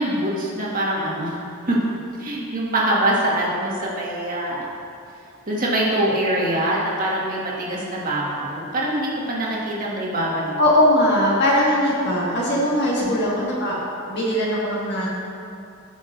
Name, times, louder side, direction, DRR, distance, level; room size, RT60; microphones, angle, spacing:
voice 1, 0.0-1.4 1.7-1.8 2.2-4.8 5.5-10.5 13.0-13.3, right 1 dB, 40° right, -5 dB, 1.7 m, -24 dB
voice 2, 10.6-13.8 14.1-15.1, left 1 dB, 50° left, -6 dB, 1.8 m, -20 dB
15.5 x 6.0 x 2.6 m, 2.5 s
head